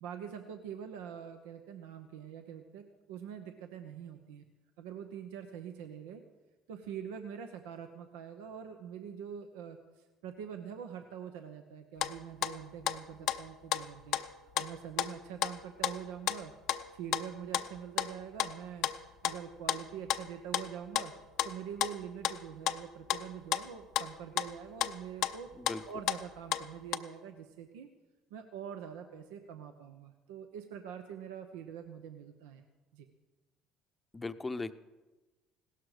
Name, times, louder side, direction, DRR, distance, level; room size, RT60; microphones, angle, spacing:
voice 1, 0.0-4.4 4.8-6.2 6.7-14.2 14.6-16.5 16.9-18.9 19.2-21.1 21.4-25.5 25.9-27.9 28.3-32.6 32.9-33.1, right 8 dB, 85° right, 6 dB, 0.8 m, -44 dB
sound 1, 12.0-13.0 13.3-13.8 14.1-15.5 15.8-16.4 16.7-17.2 17.5-18.1 18.4-19.4 19.7-22.4 22.7-22.8 23.1-24.1 24.4-24.5 24.8-26.2 26.5-27.0, left 12 dB, 70° left, 0.6 m, -33 dB
voice 2, 34.1-34.7, left 3 dB, 20° left, 11 dB, 0.7 m, -37 dB
16.5 x 12.5 x 4.9 m, 1.2 s
supercardioid pair, 80°, 0 cm